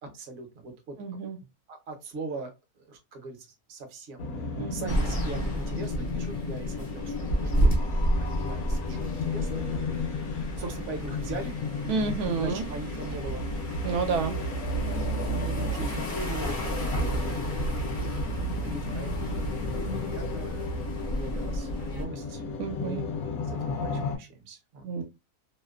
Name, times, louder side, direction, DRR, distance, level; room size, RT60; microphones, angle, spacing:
voice 1, 0.0-1.0 1.7-7.8 8.2-11.6 12.4-13.5 14.2-14.4 14.9-22.4 22.8-23.0 23.4-25.0, right 3 dB, 55° right, 0.8 m, -41 dB
voice 2, 1.0-1.4 4.6-5.0 11.9-12.7 13.8-14.4 22.6-23.1 24.8-25.0, right 5 dB, 80° right, 1.1 m, -30 dB
sound 1, 4.2-24.2, left 4 dB, 75° left, 1.0 m, -34 dB
sound 2, 4.9-22.0, right 1 dB, 50° left, 0.6 m, -31 dB
2.8 x 2.0 x 2.3 m
omnidirectional pair, 1.6 m